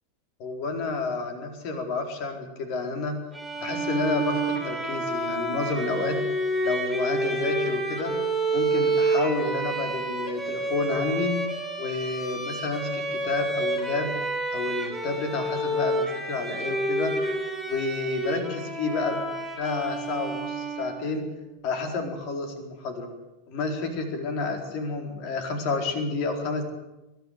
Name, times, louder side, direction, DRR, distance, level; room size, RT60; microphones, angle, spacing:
voice 1, 0.4-3.2 3.6-6.2 6.6-8.1 8.5-11.3 11.8-14.1 14.5-17.1 17.7-19.3 19.6-21.2 21.6-23.1 23.5-26.6, left 3 dB, 45° left, 4 dB, 4.3 m, -30 dB
Bowed string instrument, 3.3-21.2, right 2 dB, 5° right, 5.3 m, -29 dB
21.5 x 13.0 x 9.5 m, 1.0 s
figure-of-eight pair, 90°, 0 cm